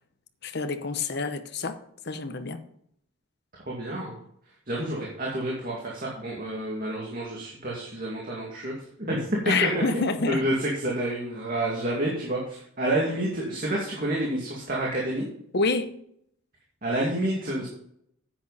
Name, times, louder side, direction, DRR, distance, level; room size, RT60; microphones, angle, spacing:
voice 1, 0.4-1.8 2.0-2.6 9.5-10.4 15.5-15.9, left 3 dB, 50° left, 0.9 m, -27 dB
voice 2, 3.7-4.2 4.7-15.2 16.8-17.7, right 1 dB, 40° right, 2.4 m, -29 dB
10.0 x 8.7 x 4.2 m
head